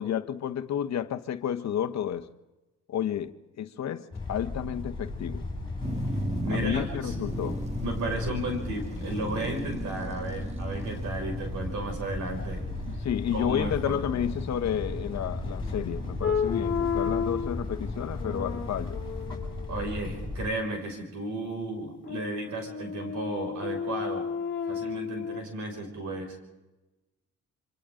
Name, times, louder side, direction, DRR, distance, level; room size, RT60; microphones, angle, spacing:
voice 1, 0.0-2.3 2.9-5.4 6.5-7.6 12.9-19.0, left 9 dB, 60° left, 11 dB, 1.1 m, -31 dB
sound 1, 4.1-20.5, left 2 dB, 15° left, 5.9 m, -36 dB
sound 2, 5.8-19.3, right 1 dB, 20° right, 1.9 m, -38 dB
voice 2, 6.4-7.1 7.8-12.7 13.3-14.0 19.7-24.3 24.7-26.4, right 2 dB, 75° right, 3 dB, 6.0 m, -34 dB
sound 3, 16.2-17.6 18.2-19.9 22.0-25.4, left 6 dB, 40° left, 2.3 m, -32 dB
27.0 x 25.5 x 3.8 m, 1.1 s
cardioid pair, 90°, 30 cm